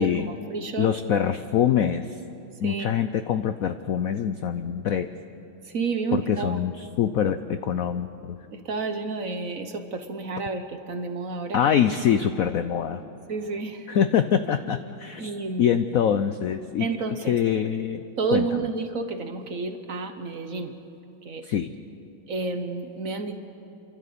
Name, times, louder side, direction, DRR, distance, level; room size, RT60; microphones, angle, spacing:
voice 1, 0.0-0.9 2.6-2.9 5.6-6.6 8.5-11.6 13.3-13.9 15.2-15.8 16.8-17.4 18.2-20.8 21.2-21.5 22.3-23.4, right 4 dB, 50° right, 7 dB, 1.2 m, -30 dB
voice 2, 0.8-2.2 2.6-5.1 6.1-8.4 11.5-13.0 13.9-15.3 15.6-16.9 17.3-18.0 18.3-18.4 21.4-21.7, left 8 dB, 80° left, 10 dB, 0.7 m, -24 dB
29.0 x 12.5 x 8.4 m, 2.9 s
omnidirectional pair, 2.2 m